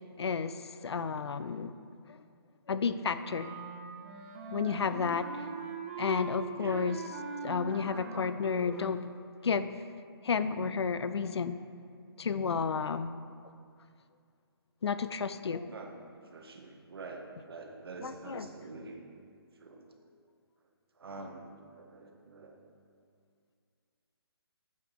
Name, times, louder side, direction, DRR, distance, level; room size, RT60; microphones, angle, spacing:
voice 1, 0.2-1.7 2.7-3.5 4.5-5.5 6.0-7.0 7.4-9.1 9.4-9.7 10.2-11.6 12.2-13.1 14.8-15.7 18.0-18.5 21.2-21.3, left 5 dB, 85° left, 12 dB, 0.4 m, -32 dB
Wind instrument woodwind instrument, 3.2-9.1, right 5 dB, 30° right, 0.6 m, -42 dB
voice 2, 15.7-19.0 19.6-19.9 21.0-22.7, right 3 dB, 65° right, 2 dB, 1.0 m, -46 dB
8.8 x 3.6 x 4.7 m, 2.3 s
hypercardioid pair, 160°, 13 cm